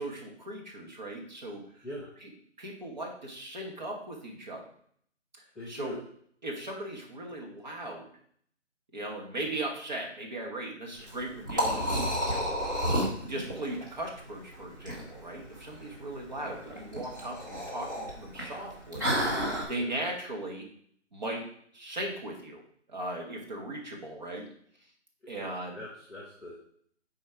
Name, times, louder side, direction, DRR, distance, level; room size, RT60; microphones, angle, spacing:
voice 1, 0.0-1.8 2.2-2.3 2.6-4.7 5.7-6.0 6.4-8.1 8.9-12.5 13.3-20.7 21.1-21.5 21.7-22.6 22.9-24.5 25.3-25.8, right 1 dB, 35° right, 0 dB, 1.4 m, -38 dB
voice 2, 5.5-6.0 19.7-19.9 25.2-25.5 25.7-26.6, left 1 dB, ahead, -13 dB, 0.5 m, -42 dB
Liquid, 11.0-19.6, equal, 15° right, 1.0 m, -32 dB
7.2 x 4.3 x 4.5 m, 0.63 s
figure-of-eight pair, 170°, 36 cm